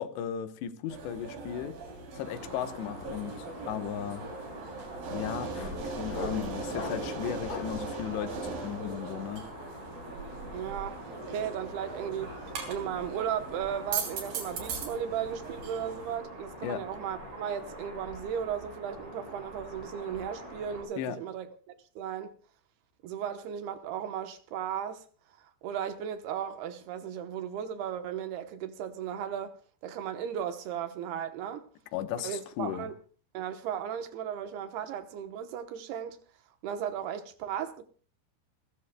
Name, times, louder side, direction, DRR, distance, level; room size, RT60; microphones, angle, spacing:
voice 1, 0.0-1.8 2.1-4.3 5.1-9.5 16.6-16.8 21.0-21.2 31.9-32.9, left 9 dB, 75° left, 3.1 m, -36 dB
sound 1, 0.9-16.2, right 4 dB, 55° right, 4.5 m, -40 dB
sound 2, 1.1-1.4 1.6-7.9, left 3 dB, 40° left, 3.2 m, -44 dB
sound 3, 2.2-20.8, equal, 20° right, 8.4 m, -45 dB
voice 2, 10.5-21.5 22.0-22.3 23.0-25.0 25.6-29.6 29.8-31.7 32.2-33.0 33.3-36.2 36.6-37.8, right 9 dB, 70° right, 2.8 m, -36 dB
29.5 x 13.5 x 2.2 m
omnidirectional pair, 5.2 m